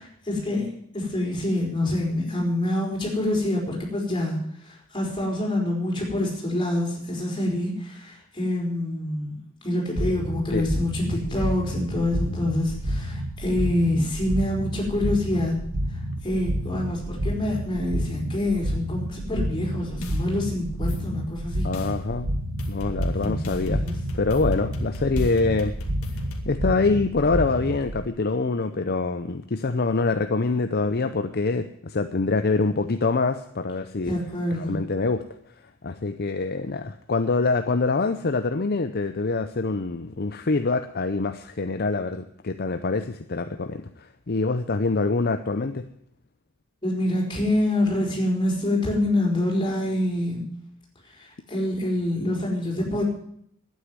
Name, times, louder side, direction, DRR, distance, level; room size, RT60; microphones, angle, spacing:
voice 1, 0.2-9.4 9.6-15.6 15.9-21.7 23.2-24.0 34.0-34.8 46.8-50.5 51.1-53.0, left 1 dB, 20° left, -2 dB, 5.2 m, -26 dB
sound 1, 10.0-28.0, equal, 85° right, 1.8 m, -30 dB
sound 2, 20.0-20.2 20.9-21.0 21.7-21.9 22.6-26.4, left 1 dB, 80° left, 2.2 m, -34 dB
voice 2, 21.6-22.3 22.7-23.8 24.1-25.7 26.5-34.1 34.7-35.2 35.8-45.9, left 3 dB, 45° left, 9 dB, 0.6 m, -25 dB
11.5 x 9.4 x 9.5 m, 0.69 s
head